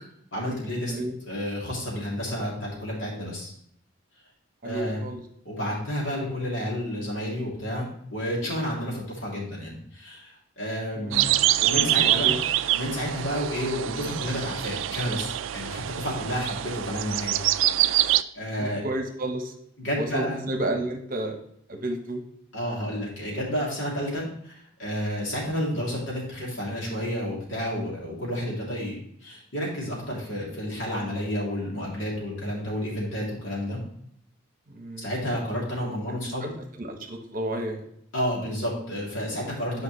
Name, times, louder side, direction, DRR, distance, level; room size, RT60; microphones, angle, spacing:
voice 1, 0.3-0.9 1.2-3.5 4.6-5.0 5.4-11.3 11.6-12.3 12.7-17.4 17.8-18.8 19.8-20.4 22.5-29.0 29.2-33.8 35.0-36.5 38.1-39.8, equal, 75° left, -4 dB, 3.0 m, -31 dB
voice 2, 4.6-5.2 10.9-11.3 12.0-12.4 16.3-16.5 18.6-19.5 20.0-21.4 21.7-22.2 34.7-35.1 36.2-36.5 36.8-37.8, right 1 dB, 45° right, 4 dB, 1.1 m, -31 dB
sound 1, 11.1-18.2, right 13 dB, 80° right, 0.3 m, -25 dB
9.1 x 5.1 x 3.2 m, 0.70 s
head